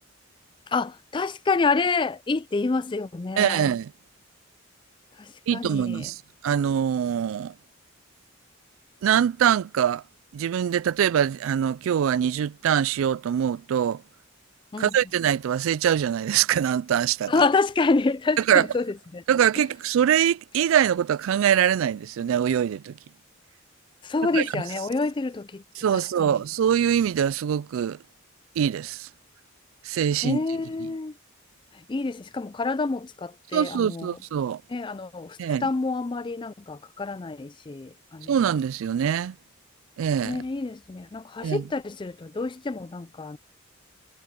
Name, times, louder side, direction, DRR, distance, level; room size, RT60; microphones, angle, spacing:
voice 1, 0.7-3.7 5.2-6.1 14.7-15.0 17.3-19.2 24.0-25.6 25.9-26.4 30.2-31.2 31.7-34.2 34.7-38.3 40.2-43.4, left 3 dB, 20° left, 0.4 m, -28 dB
voice 2, 3.4-3.9 5.5-7.5 9.0-10.0 10.3-14.0 14.8-17.3 18.5-18.7 19.3-23.0 24.3-24.4 25.8-28.0 28.6-29.1 29.8-30.4 33.5-34.6 35.4-35.7 38.3-39.4 40.0-40.4 41.4-41.6, right 9 dB, 70° right, 0.3 m, -23 dB
head